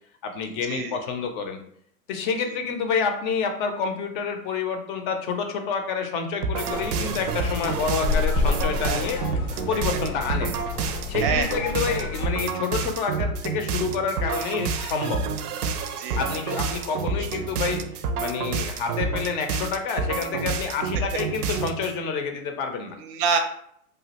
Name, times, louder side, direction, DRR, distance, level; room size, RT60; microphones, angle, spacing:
voice 1, 0.2-1.6 2.1-9.2 9.7-10.6 11.1-15.2 16.2-23.0, left 5 dB, 35° left, 6 dB, 0.4 m, -28 dB
sound 1, 6.4-22.0, right 5 dB, 90° right, 0.5 m, -29 dB
sound 2, 6.7-12.3, left 5 dB, 90° left, 0.7 m, -29 dB
voice 2, 23.0-23.4, right 6 dB, 40° right, 6 dB, 0.5 m, -27 dB
3.0 x 2.3 x 2.8 m, 0.68 s
hypercardioid pair, 125°, 44 cm